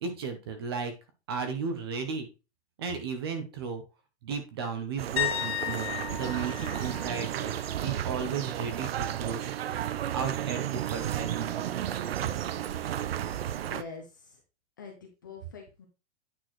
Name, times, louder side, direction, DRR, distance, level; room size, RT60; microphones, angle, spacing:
voice 1, 0.0-0.9 1.3-2.3 2.8-3.8 4.2-9.8 10.1-11.8 12.2-12.3, right 6 dB, 20° right, 7 dB, 0.7 m, -35 dB
sound 1, 5.0-13.8, right 11 dB, 55° right, 0.5 m, -33 dB
sound 2, 5.2-8.9 9.2-9.6 12.5-12.6, left 12 dB, 60° left, 1.7 m, -36 dB
voice 2, 13.4-14.4 14.8-15.9, left 5 dB, 15° left, 1 dB, 0.5 m, -45 dB
9.0 x 6.0 x 3.1 m, 0.29 s
hypercardioid pair, 180°, 35 cm